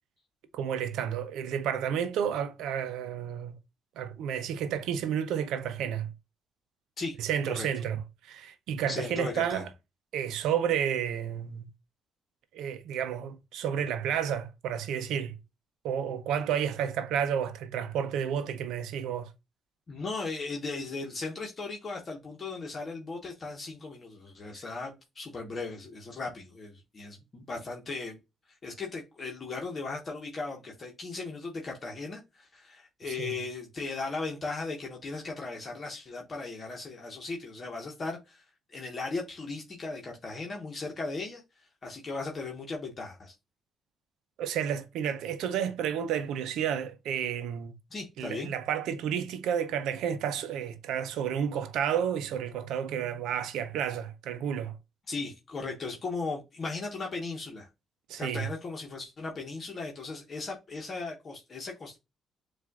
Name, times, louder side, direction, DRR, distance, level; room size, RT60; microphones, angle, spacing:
voice 1, 0.5-3.6 4.0-6.1 7.2-9.7 10.1-11.7 12.5-15.4 15.8-19.3 33.1-33.4 44.4-47.7 48.2-54.7 58.1-58.5, right 8 dB, 85° right, 0.5 m, -31 dB
voice 2, 8.9-9.6 19.9-28.2 28.6-38.4 38.7-41.4 41.8-43.3 47.9-48.5 55.1-57.7 58.2-62.0, left 3 dB, 40° left, 1.1 m, -37 dB
7.3 x 2.5 x 2.3 m
cardioid pair, 90°, 0 cm